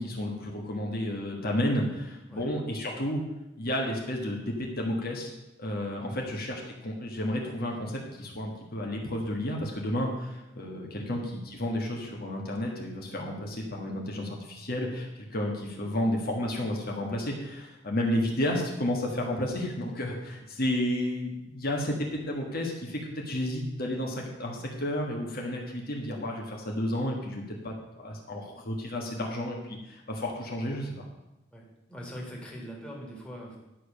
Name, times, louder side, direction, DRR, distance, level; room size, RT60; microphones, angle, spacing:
voice 1, 0.0-3.2 3.6-5.3 5.6-31.0, left 1 dB, 50° left, 0 dB, 1.6 m, -32 dB
voice 2, 31.5-33.6, equal, 5° left, -3 dB, 2.1 m, -42 dB
11.0 x 5.1 x 6.6 m, 0.96 s
head